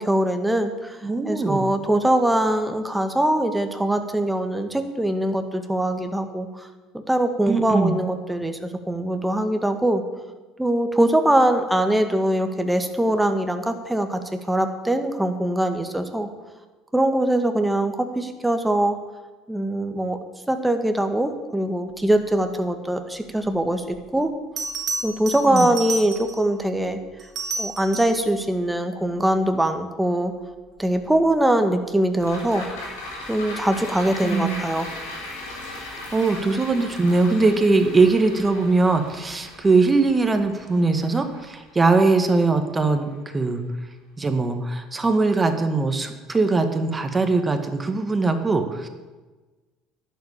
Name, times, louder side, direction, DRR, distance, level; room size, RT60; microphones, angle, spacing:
voice 1, 0.0-6.7 7.1-8.6 8.9-10.0 10.6-16.3 16.9-19.0 19.5-20.2 20.5-24.3 25.0-27.0 27.6-30.3 30.8-32.7 33.3-34.9, right 1 dB, 5° right, 6 dB, 1.9 m, -22 dB
voice 2, 1.0-1.7 7.5-7.9 25.5-25.7 34.2-34.6 36.1-43.6 44.2-48.9, right 3 dB, 20° right, 7 dB, 1.8 m, -21 dB
Bell, 23.9-24.0 24.6-26.5 27.2-28.3 30.9-31.2, right 4 dB, 45° right, 2.5 m, -31 dB
sound 1, 32.2-42.7 43.1-43.2, left 2 dB, 80° left, 4.9 m, -38 dB
11.5 x 8.3 x 8.6 m, 1.2 s
hypercardioid pair, 65°, 0 cm